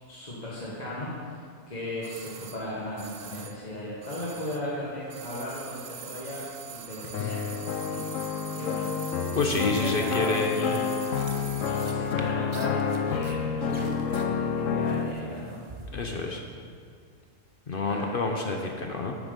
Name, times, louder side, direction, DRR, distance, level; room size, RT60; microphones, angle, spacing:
voice 1, 0.1-9.0 9.4-10.9 11.6-15.6 17.9-18.1, left 1 dB, 35° left, -7 dB, 1.8 m, -37 dB
sound 1, 2.0-4.8 5.0-12.1 12.3-12.4, right 8 dB, 60° right, 0.8 m, -44 dB
sound 2, 7.1-15.1, left 6 dB, 80° left, 1.0 m, -29 dB
voice 2, 9.3-10.7 15.9-16.4 17.7-19.1, left 3 dB, 50° left, 2 dB, 0.9 m, -28 dB
sound 3, 11.0-16.3, right 2 dB, 30° right, 0.6 m, -45 dB
9.6 x 8.8 x 5.3 m, 2.2 s
omnidirectional pair, 1.3 m